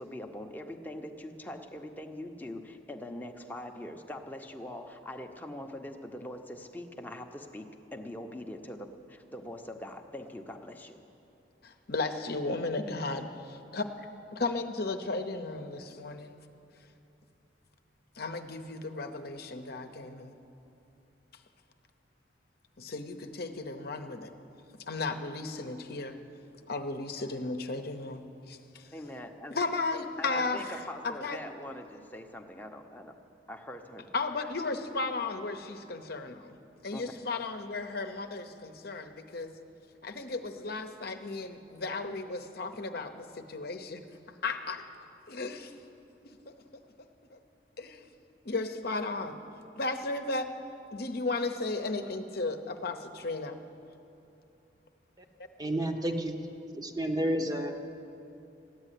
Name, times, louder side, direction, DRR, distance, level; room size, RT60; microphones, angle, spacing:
voice 1, 0.0-11.0 28.9-29.6 30.2-33.2 33.5-34.1 36.9-37.2, left 1 dB, 10° left, 3 dB, 0.8 m, -43 dB
voice 2, 11.6-13.9 14.3-16.4 18.2-20.3 22.8-24.3 24.9-26.2 26.7-28.9 29.5-30.8 31.0-31.4 34.1-36.6 36.8-39.5 40.0-44.0 44.4-44.8 45.3-45.5 47.3-47.4 47.8-48.1 48.4-49.4 49.7-50.5 50.9-53.6, left 3 dB, 60° left, 6 dB, 0.8 m, -35 dB
voice 3, 55.6-56.4 56.7-57.8, right 1 dB, 20° right, 4 dB, 0.8 m, -30 dB
14.0 x 8.8 x 10.0 m, 2.8 s
head